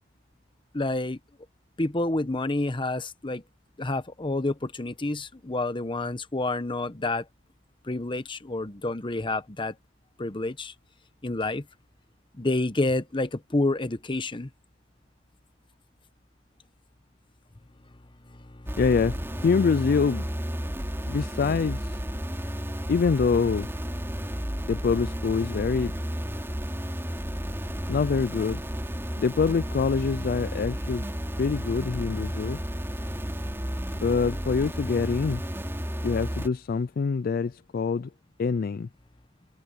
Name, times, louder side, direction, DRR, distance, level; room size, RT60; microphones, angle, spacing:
voice 1, 0.7-1.2 1.8-3.4 3.8-7.2 7.8-9.8 10.2-10.7 11.2-11.6 12.3-14.5 18.3-18.8, left 2 dB, 25° left, 1.0 m, -29 dB
sound 1, 18.7-36.5, equal, 15° right, 3.3 m, -32 dB
voice 2, 18.8-19.2 19.4-20.2 21.1-22.0 22.9-23.7 24.6-25.9 27.9-28.6 29.2-31.0 31.4-32.6 34.0-35.4 36.0-38.1 38.4-38.9, left 5 dB, 50° left, 0.4 m, -25 dB
head